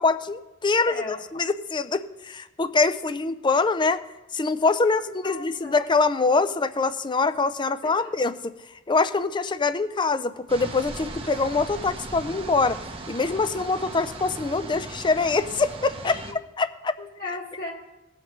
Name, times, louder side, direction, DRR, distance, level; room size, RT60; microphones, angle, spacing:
voice 1, 0.0-4.0 4.3-8.4 8.9-12.8 13.1-16.2 16.6-16.9, left 4 dB, 25° left, 13 dB, 0.4 m, -24 dB
voice 2, 0.8-1.2 4.8-4.9 5.2-5.8 8.0-8.1 16.0-16.4 17.0-17.7, left 3 dB, 45° left, -4 dB, 1.8 m, -36 dB
sound 1, 10.5-16.3, right 2 dB, 30° right, 0.8 m, -38 dB
18.5 x 7.3 x 3.1 m, 1.0 s
head